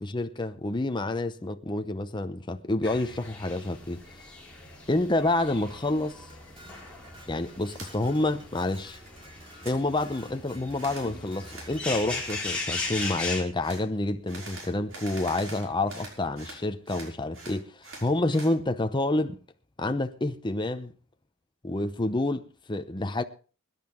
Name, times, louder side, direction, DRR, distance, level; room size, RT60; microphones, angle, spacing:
voice 1, 0.0-4.0 4.9-6.2 7.3-9.0 9.6-19.4 19.8-20.9 21.6-23.2, left 2 dB, 25° left, 0.8 m, -28 dB
sound 1, 2.8-13.4, left 3 dB, 5° left, 4.6 m, -38 dB
Dishes pots and pans, 5.4-13.1, right 1 dB, 25° right, 2.6 m, -53 dB
sound 2, 7.7-7.9 8.3-9.1 9.4-9.8 10.8-11.1 11.5-11.7 12.2-12.4 12.9-13.2 13.6-13.8 14.3-16.6 16.9-18.5, right 2 dB, 85° right, 5.7 m, -44 dB
23.0 x 10.5 x 3.7 m
head